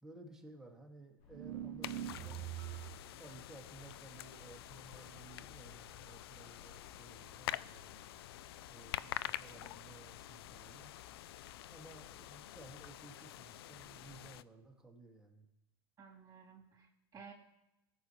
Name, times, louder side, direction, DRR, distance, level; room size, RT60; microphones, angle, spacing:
voice 1, 0.0-2.5 3.2-8.0 8.7-10.9 11.7-15.5, right 2 dB, 5° right, 0 dB, 2.2 m, -56 dB
sound 1, 1.2-13.0, left 6 dB, 50° left, 2.2 m, -62 dB
sound 2, 1.3-3.1, right 13 dB, 55° right, 0.7 m, -43 dB
sound 3, 1.8-14.4, left 14 dB, 70° left, 0.4 m, -47 dB
voice 2, 16.0-17.3, right 6 dB, 25° right, -2 dB, 3.6 m, -55 dB
17.5 x 7.3 x 3.2 m, 0.94 s
hypercardioid pair, 100°, 13 cm